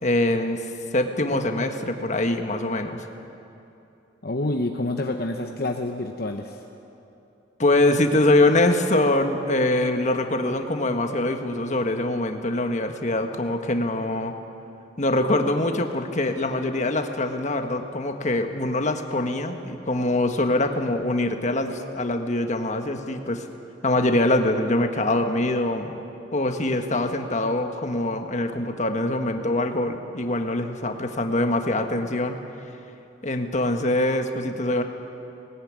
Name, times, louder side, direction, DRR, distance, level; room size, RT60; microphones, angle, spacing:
voice 1, 0.0-0.6 0.9-3.0 7.6-14.3 15.0-23.4 23.8-25.9 26.3-32.4 33.2-34.8, left 1 dB, 40° left, 5 dB, 1.5 m, -23 dB
voice 2, 4.2-6.6, left 2 dB, 55° left, 3 dB, 1.0 m, -28 dB
19.0 x 18.5 x 9.6 m, 2.8 s
head